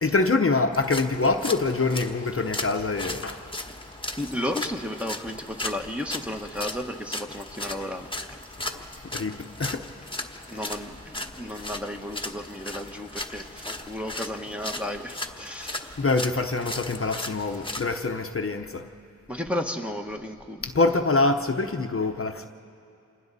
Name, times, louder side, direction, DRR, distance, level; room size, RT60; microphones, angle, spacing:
voice 1, 0.0-3.4 8.6-8.8 9.1-9.9 16.0-18.8 20.6-22.5, left 3 dB, 45° left, 5 dB, 0.9 m, -25 dB
sound 1, 0.7-18.0, left 2 dB, 15° left, 1.3 m, -37 dB
voice 2, 4.2-8.4 10.5-16.0 17.0-17.1 19.3-20.6, left 1 dB, 5° right, 1 dB, 1.3 m, -33 dB
30.0 x 27.0 x 4.1 m, 2.7 s
wide cardioid pair, 50°, 31 cm